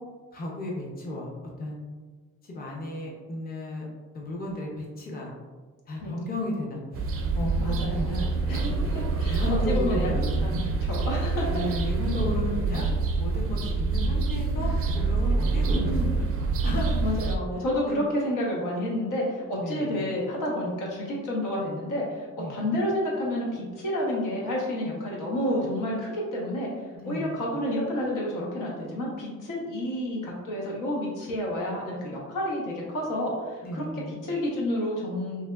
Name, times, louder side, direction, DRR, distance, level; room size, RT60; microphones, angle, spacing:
voice 1, 0.3-1.8 2.4-3.9 4.1-5.3 5.9-8.6 9.3-10.5 11.5-12.9 13.2-16.3 16.6-17.0 17.9-18.0 19.5-20.0 22.4-22.6 26.9-27.4 33.6-34.1, left 1 dB, 30° left, -3 dB, 0.6 m, -34 dB
sound 1, 6.9-17.4, right 3 dB, 50° right, 0.4 m, -26 dB
voice 2, 7.6-8.2 8.5-10.1 10.4-11.5 15.7-16.1 17.0-26.7 27.0-35.5, left 1 dB, 85° left, -3 dB, 0.9 m, -30 dB
3.4 x 2.7 x 2.3 m, 1.4 s
cardioid pair, 120°, 30 cm